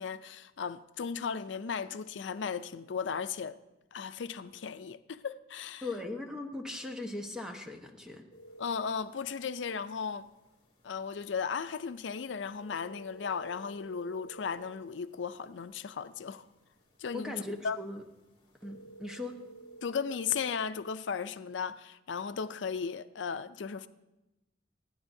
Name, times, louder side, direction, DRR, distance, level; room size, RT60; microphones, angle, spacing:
voice 1, 0.0-3.6 3.9-5.9 8.6-10.3 10.8-16.4 17.0-17.8 19.8-23.9, left 6 dB, 85° left, 0.5 m, -36 dB
voice 2, 5.8-8.2 17.1-18.0 18.6-19.3, left 2 dB, 5° right, 1.1 m, -39 dB
sound 1, 8.3-20.6, right 3 dB, 30° left, 3.0 m, -55 dB
28.0 x 9.6 x 2.7 m
head